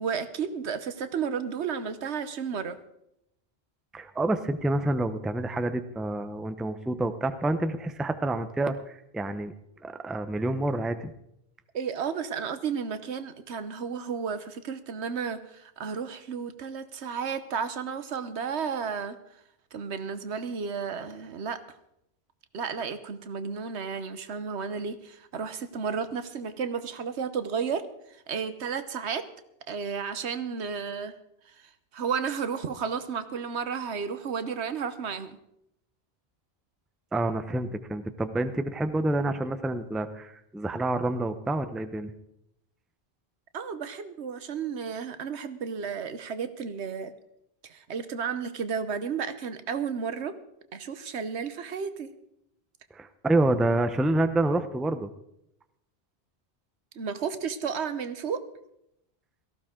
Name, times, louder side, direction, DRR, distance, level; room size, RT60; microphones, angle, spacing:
voice 1, 0.0-2.8 11.7-19.1 19.7-21.6 22.5-27.9 28.3-29.2 29.7-31.1 31.9-35.3 43.5-47.1 47.6-50.3 50.7-52.1 56.9-58.4, right 6 dB, 80° right, 11 dB, 1.2 m, -32 dB
voice 2, 3.9-9.5 9.8-11.1 37.1-42.1 52.9-55.1, right 2 dB, ahead, 9 dB, 0.5 m, -28 dB
17.5 x 14.5 x 3.7 m, 0.80 s
omnidirectional pair, 1.1 m